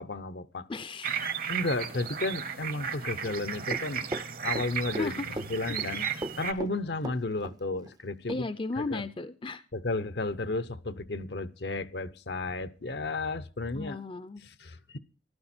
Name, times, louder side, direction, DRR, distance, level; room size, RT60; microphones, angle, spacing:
voice 1, 0.0-0.7 1.5-4.1 4.4-5.1 5.5-6.1 6.4-8.4 8.9-9.0 9.7-14.0 14.6-15.0, left 2 dB, 65° left, 0.8 m, -33 dB
voice 2, 0.7-1.3 5.0-5.4 8.3-9.6 13.7-14.4, left 3 dB, 30° left, 0.5 m, -35 dB
sound 1, 1.0-6.5, right 7 dB, 55° right, 1.0 m, -34 dB
Run, 3.7-5.1 5.4-5.9 6.2-7.6 7.9-8.0 8.3-8.4, right 1 dB, 20° right, 0.5 m, -37 dB
14.0 x 12.5 x 4.3 m
head